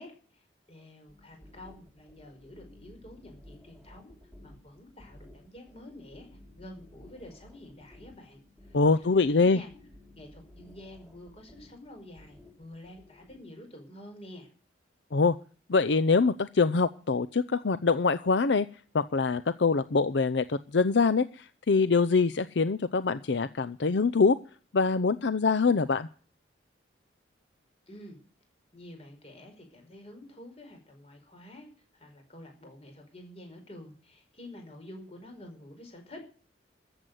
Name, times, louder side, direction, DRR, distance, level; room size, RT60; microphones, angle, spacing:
voice 1, 0.0-4.1 4.4-6.3 6.6-9.7 10.2-14.5 27.9-28.2 28.7-36.2, left 1 dB, 35° left, 4 dB, 5.1 m, -49 dB
sound 1, 1.1-13.4, left 1 dB, ahead, 3.6 m, -55 dB
voice 2, 8.7-9.6 15.1-15.3 15.7-18.7 18.9-24.4 24.7-26.1, left 4 dB, 70° left, 14 dB, 0.6 m, -24 dB
14.0 x 8.0 x 9.2 m, 0.41 s
head